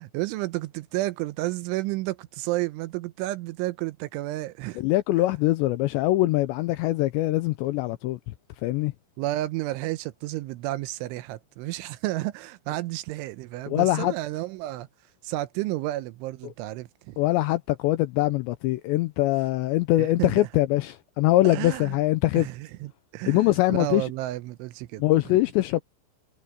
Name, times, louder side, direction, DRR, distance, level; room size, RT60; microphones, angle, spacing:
voice 1, 0.0-4.8 9.2-14.9 15.2-17.2 20.0-20.5 21.4-22.0 22.4-25.0, right 17 dB, 80° right, 3.0 m, -31 dB
voice 2, 4.8-8.2 8.6-8.9 13.7-14.1 17.2-22.5 23.3-24.1 25.0-25.8, left 17 dB, 85° left, 2.6 m, -23 dB
omnidirectional pair, 5.8 m